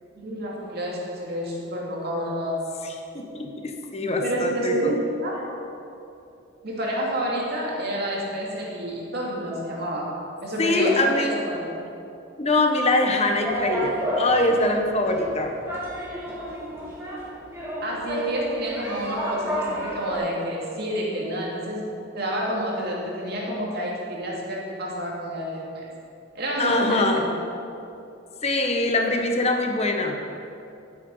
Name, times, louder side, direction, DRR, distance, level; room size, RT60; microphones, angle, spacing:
voice 1, 0.2-2.6 4.2-5.4 6.6-10.1 10.4-11.7 17.8-25.9 26.3-27.3, equal, 55° right, -3 dB, 2.5 m, -29 dB
voice 2, 3.1-4.9 10.6-11.4 12.4-15.6 26.6-27.3 28.4-30.2, left 2 dB, 35° left, 3 dB, 1.1 m, -23 dB
sound 1, 13.4-20.2, equal, 15° right, 2.6 m, -30 dB
12.5 x 8.5 x 5.5 m, 2.7 s
head